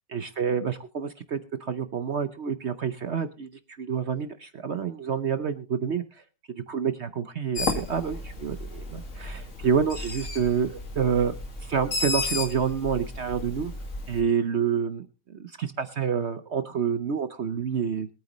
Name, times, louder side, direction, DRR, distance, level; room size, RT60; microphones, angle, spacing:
voice 1, 0.1-6.0 6.5-11.3 11.6-13.7 14.1-18.1, right 7 dB, 55° right, 10 dB, 0.8 m, -28 dB
Bird, 7.6-14.2, left 2 dB, 45° left, 2.3 m, -33 dB
22.5 x 9.2 x 3.0 m, 0.32 s
omnidirectional pair, 1.9 m